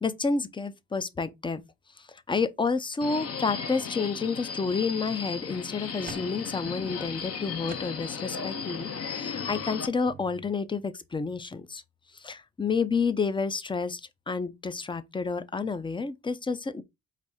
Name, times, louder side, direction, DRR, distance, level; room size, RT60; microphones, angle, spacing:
voice 1, 0.0-1.6 2.0-11.8 12.1-14.0 14.3-16.8, left 4 dB, 15° left, 0.5 m, -30 dB
Subway metro underground, 3.0-9.9, left 6 dB, 50° left, 0.9 m, -36 dB
sound 1, 5.0-5.1 5.6-8.4 8.8-8.9 9.3-10.5, right 7 dB, 30° right, 0.5 m, -49 dB
4.1 x 2.6 x 4.8 m
cardioid pair, 90°, 30 cm